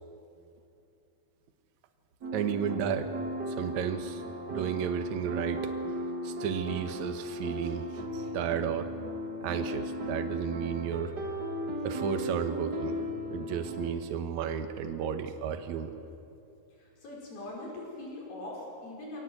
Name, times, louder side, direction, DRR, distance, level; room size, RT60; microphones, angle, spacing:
sound 1, 2.2-13.9, equal, 80° right, 0.9 m, -36 dB
voice 1, 2.3-3.2 3.5-4.2 4.5-8.9 9.4-11.1 11.8-13.0 13.3-16.0, right 8 dB, 60° right, 7 dB, 2.1 m, -33 dB
voice 2, 16.7-19.2, left 2 dB, 60° left, -3 dB, 7.1 m, -42 dB
26.0 x 18.0 x 8.0 m, 2.7 s
omnidirectional pair, 4.6 m